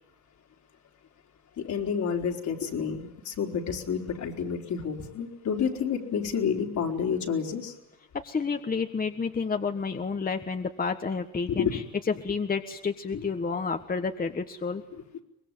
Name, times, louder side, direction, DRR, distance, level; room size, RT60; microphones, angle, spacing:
voice 1, 1.6-7.7 11.5-11.8 13.1-13.2, left 7 dB, 70° left, 1 dB, 4.1 m, -29 dB
voice 2, 8.2-11.8 12.2-14.8, left 5 dB, 30° left, 5 dB, 1.5 m, -30 dB
24.5 x 20.5 x 9.2 m, 0.83 s
cardioid pair, 90°, 30 cm